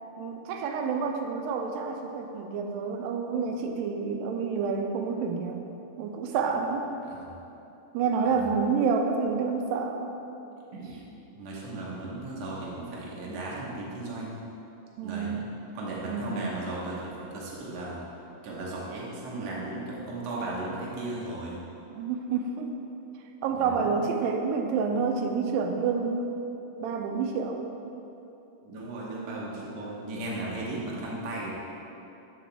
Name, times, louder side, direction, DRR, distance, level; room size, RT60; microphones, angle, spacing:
voice 1, 0.2-5.6 6.0-6.9 7.9-10.0 15.0-15.5 16.1-16.5 21.9-22.7 23.4-26.3 26.8-27.7, right 5 dB, 90° right, 3 dB, 2.3 m, -28 dB
voice 2, 11.4-14.4 15.0-15.4 15.7-18.0 18.4-21.6 23.5-23.9 28.6-31.5, right 2 dB, 65° right, -5 dB, 1.8 m, -36 dB
7.3 x 5.8 x 3.4 m, 2.9 s
omnidirectional pair, 3.9 m